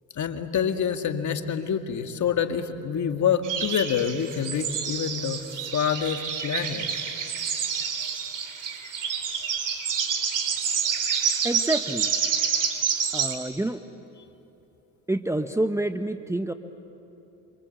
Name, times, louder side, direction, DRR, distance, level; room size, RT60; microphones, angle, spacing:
voice 1, 0.1-6.9, left 7 dB, 45° left, 7 dB, 1.9 m, -27 dB
sound 1, 3.4-13.3, right 7 dB, 50° right, 3.3 m, -28 dB
voice 2, 11.4-12.1 13.1-13.8 15.1-16.5, right 1 dB, 5° right, 8 dB, 1.0 m, -27 dB
27.0 x 25.0 x 8.1 m, 3.0 s
supercardioid pair, 75°, 40 cm